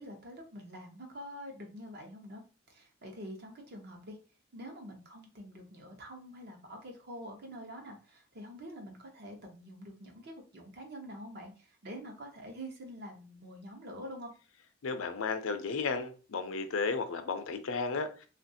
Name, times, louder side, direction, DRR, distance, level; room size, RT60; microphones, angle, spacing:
voice 1, 0.0-4.2 4.5-14.3, equal, 50° right, 1 dB, 0.8 m, -46 dB
voice 2, 14.8-18.3, left 4 dB, 80° left, 8 dB, 0.5 m, -34 dB
3.1 x 2.5 x 2.7 m, 0.36 s
head